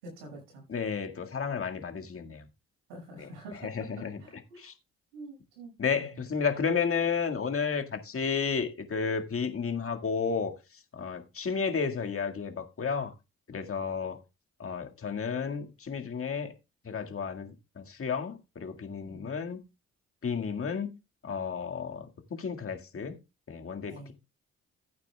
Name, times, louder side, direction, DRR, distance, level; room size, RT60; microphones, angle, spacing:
voice 1, 0.0-0.7 1.9-2.0 2.9-3.9 4.2-4.7 5.1-6.2 19.0-19.4 23.9-24.1, right 2 dB, 85° right, 5.8 m, -47 dB
voice 2, 0.7-2.4 3.2-3.3 3.6-4.2 4.6-4.7 5.8-10.5 10.9-13.1 13.5-14.2 14.6-16.5 16.9-19.6 20.2-21.0 21.2-22.1 22.3-23.2 23.5-24.1, left 6 dB, 40° left, 1.9 m, -32 dB
15.5 x 8.7 x 2.3 m
hypercardioid pair, 50°, 34 cm